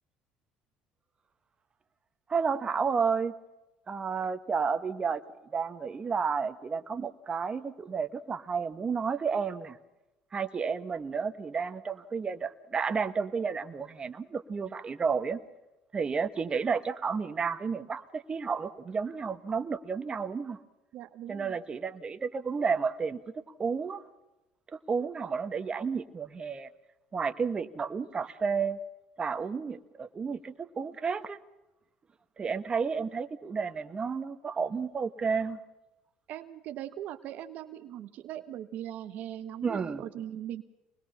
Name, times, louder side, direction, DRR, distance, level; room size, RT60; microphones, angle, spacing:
voice 1, 2.3-3.3 3.9-5.2 5.5-9.8 10.3-15.4 15.9-20.6 21.3-24.0 24.7-26.7 27.1-28.8 29.2-31.4 32.4-35.6 39.6-40.0, right 5 dB, 30° right, 10 dB, 1.5 m, -31 dB
voice 2, 20.9-21.6 36.3-40.6, right 11 dB, 65° right, 9 dB, 1.1 m, -40 dB
24.5 x 20.5 x 5.7 m, 0.99 s
supercardioid pair, 80°, 3 cm